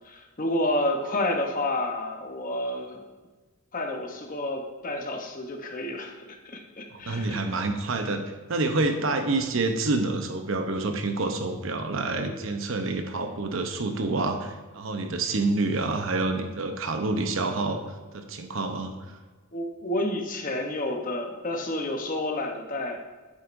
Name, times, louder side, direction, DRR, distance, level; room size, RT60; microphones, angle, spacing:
voice 1, 0.0-3.0 3.7-7.4 19.5-23.0, left 1 dB, 40° left, 3 dB, 0.9 m, -30 dB
voice 2, 6.9-8.2 8.5-17.8 18.1-19.2, right 3 dB, 65° right, 6 dB, 0.8 m, -28 dB
8.5 x 7.4 x 2.6 m, 1.3 s
head